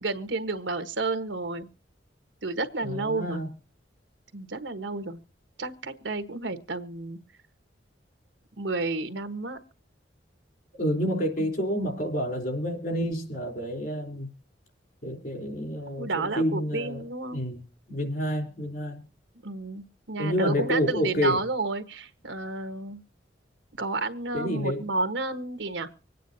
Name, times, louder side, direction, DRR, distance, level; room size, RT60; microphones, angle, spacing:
voice 1, 0.0-1.7 2.4-3.4 4.3-5.2 5.6-7.2 8.6-9.6 11.4-11.5 16.0-17.4 19.4-23.0 23.8-25.9, right 3 dB, 85° right, 11 dB, 1.2 m, -31 dB
voice 2, 2.8-3.5 10.8-14.3 15.0-17.1 17.3-17.6 17.9-19.0 20.2-21.4 24.3-24.9, equal, 55° left, 3 dB, 3.5 m, -29 dB
25.0 x 9.2 x 2.7 m, 0.35 s
head